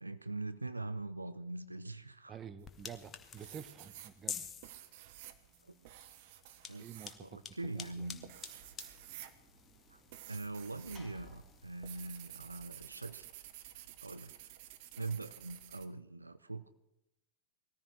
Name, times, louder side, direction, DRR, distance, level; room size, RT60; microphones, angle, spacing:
voice 1, 0.0-2.4 5.6-5.7 6.7-6.8 7.2-8.2 9.9-10.0 10.3-13.3 13.7-14.3 15.0-16.6, right 2 dB, 80° right, 14 dB, 0.6 m, -42 dB
voice 2, 2.3-4.4 6.8-7.4 7.7-8.2, right 7 dB, 25° right, 12 dB, 1.1 m, -49 dB
sound 1, 2.6-12.4, left 7 dB, 25° left, 1.3 m, -50 dB
sound 2, 2.6-3.1 3.4-11.1 11.3-15.9, right 13 dB, 50° right, 1.1 m, -52 dB
Sliding door / Slam, 7.7-13.0, right 1 dB, ahead, 3.8 m, -62 dB
20.0 x 14.0 x 4.7 m, 0.85 s
figure-of-eight pair, 90°, 0 cm